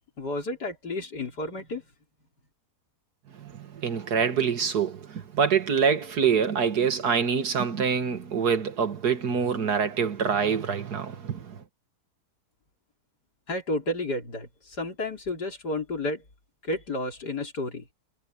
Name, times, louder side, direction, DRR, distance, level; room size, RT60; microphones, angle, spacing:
voice 1, 0.2-1.8 13.5-16.2 16.7-17.8, left 2 dB, 85° left, 4.5 m, -31 dB
voice 2, 3.3-11.6, right 6 dB, 75° right, 2.2 m, -25 dB
omnidirectional pair, 1.7 m